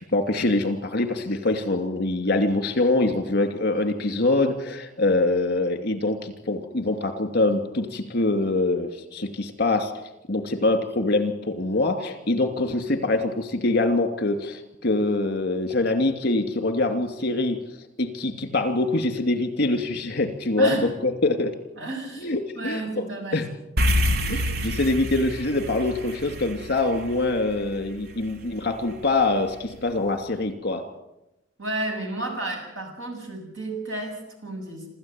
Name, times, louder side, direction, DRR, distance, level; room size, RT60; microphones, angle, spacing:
voice 1, 0.1-9.9 10.3-17.6 18.0-21.5 22.2-23.0 23.3-23.4 24.3-30.8, left 2 dB, 55° left, 8 dB, 2.8 m, -24 dB
voice 2, 21.8-23.5 31.6-34.9, right 2 dB, 75° right, 3 dB, 7.3 m, -32 dB
sound 1, 23.8-28.3, left 1 dB, 55° right, 1.4 m, -27 dB
27.0 x 14.0 x 9.1 m, 0.91 s
head